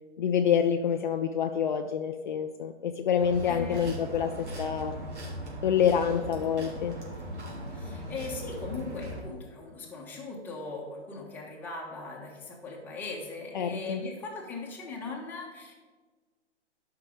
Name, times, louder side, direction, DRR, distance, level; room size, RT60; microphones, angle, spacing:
voice 1, 0.2-5.0 5.6-7.0 13.5-14.0, left 8 dB, 45° left, 5 dB, 0.5 m, -27 dB
sound 1, 3.2-9.2, equal, 75° right, 3.6 m, -39 dB
voice 2, 3.5-3.9 7.7-15.7, left 3 dB, 5° left, -3 dB, 1.4 m, -39 dB
13.0 x 5.8 x 5.1 m, 1.4 s
hypercardioid pair, 155°, 35 cm